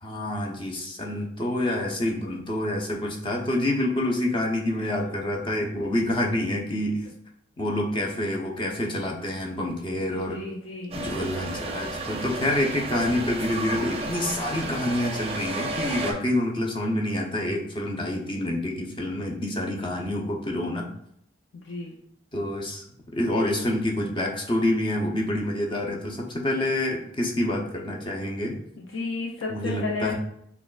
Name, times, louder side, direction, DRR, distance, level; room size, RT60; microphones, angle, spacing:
voice 1, 0.0-7.1 7.6-10.4 10.9-20.9 22.3-22.8 23.1-28.6 29.5-30.1, left 1 dB, 25° left, -1 dB, 0.7 m, -27 dB
voice 2, 10.1-11.0 21.5-22.0 28.8-30.1, left 3 dB, 85° left, -2 dB, 0.6 m, -33 dB
sound 1, 10.9-16.1, right 2 dB, 30° right, 0.5 m, -32 dB
6.0 x 2.3 x 2.4 m, 0.71 s
head